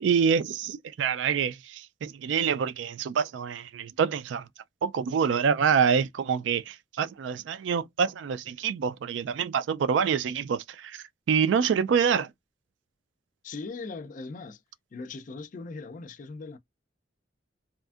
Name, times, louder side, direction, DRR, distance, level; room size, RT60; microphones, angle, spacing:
voice 1, 0.0-4.5 4.8-12.3, right 6 dB, 70° right, 0.3 m, -26 dB
voice 2, 13.4-14.6 14.9-16.6, left 3 dB, 45° left, 0.4 m, -39 dB
2.6 x 2.5 x 2.3 m
head